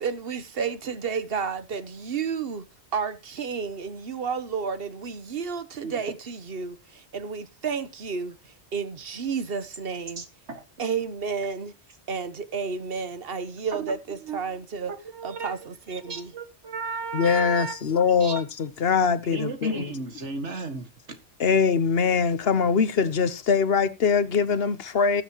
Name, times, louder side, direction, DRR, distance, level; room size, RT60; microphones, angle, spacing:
voice 1, 0.0-2.6 2.9-10.2 10.8-11.7 12.1-14.9 15.2-16.3, right 5 dB, 60° right, 1.2 m, -31 dB
voice 2, 10.2-10.6 13.7-14.4 14.9-15.5 16.0-17.8 18.1-18.4 19.3-20.9, right 4 dB, 90° right, 2.1 m, -35 dB
voice 3, 17.1-19.9 21.4-25.2, left 5 dB, 60° left, 1.1 m, -22 dB
19.5 x 7.3 x 3.0 m
omnidirectional pair, 1.2 m